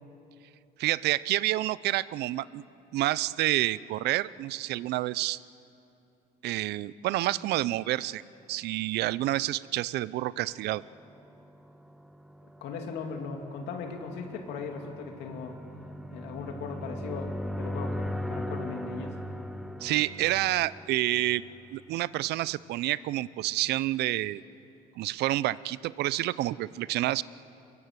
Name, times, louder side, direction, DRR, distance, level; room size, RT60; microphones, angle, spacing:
voice 1, 0.8-2.6 2.9-5.4 6.4-8.2 8.5-10.8 19.8-21.4 21.7-24.4 25.0-27.2, right 16 dB, 75° right, 19 dB, 0.6 m, -28 dB
sound 1, 11.0-21.8, left 1 dB, ahead, 0.9 m, -39 dB
voice 2, 12.6-15.6 16.1-19.2, left 5 dB, 85° left, 3 dB, 2.8 m, -38 dB
24.0 x 22.0 x 8.2 m, 2.8 s
cardioid pair, 110°, 17 cm